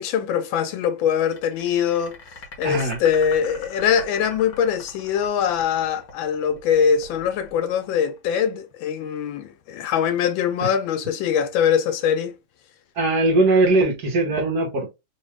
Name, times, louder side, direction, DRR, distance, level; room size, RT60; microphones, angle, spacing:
voice 1, 0.0-2.2 2.6-12.3, left 8 dB, 80° left, 1.4 m, -22 dB
sound 1, 1.3-8.4, left 3 dB, 55° left, 1.4 m, -41 dB
voice 2, 2.6-3.0 10.6-10.7 12.9-14.9, right 2 dB, 60° right, 1.7 m, -20 dB
3.8 x 2.5 x 3.2 m
omnidirectional pair, 2.1 m